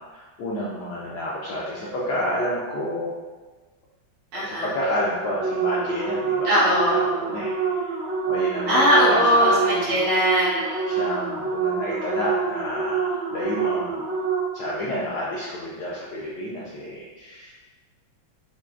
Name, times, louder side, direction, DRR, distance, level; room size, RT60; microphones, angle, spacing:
voice 1, 0.0-3.1 4.3-10.0 10.9-14.0 14.5-17.5, equal, 75° left, -5 dB, 0.9 m, -30 dB
voice 2, 4.3-4.7 6.4-6.9 8.7-11.0, equal, 90° right, -8 dB, 2.1 m, -20 dB
sound 1, 5.4-14.8, right 5 dB, 65° right, 1.2 m, -27 dB
5.6 x 2.2 x 2.4 m, 1.3 s
omnidirectional pair, 2.3 m